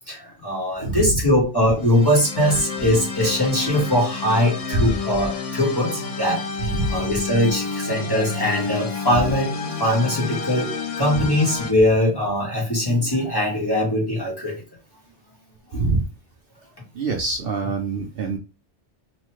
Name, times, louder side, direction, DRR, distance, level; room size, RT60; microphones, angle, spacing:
voice 1, 0.1-6.4 6.9-9.5 9.8-14.6 15.7-15.9, left 1 dB, 20° left, -3 dB, 0.9 m, -21 dB
voice 2, 0.8-1.2 4.7-5.0 6.6-7.0 11.2-11.3 15.7-16.0 16.9-18.4, right 2 dB, 60° right, 1 dB, 0.7 m, -24 dB
sound 1, 1.8-11.7, left 5 dB, 70° left, 0.3 m, -30 dB
3.1 x 2.1 x 3.1 m, 0.30 s
omnidirectional pair, 1.2 m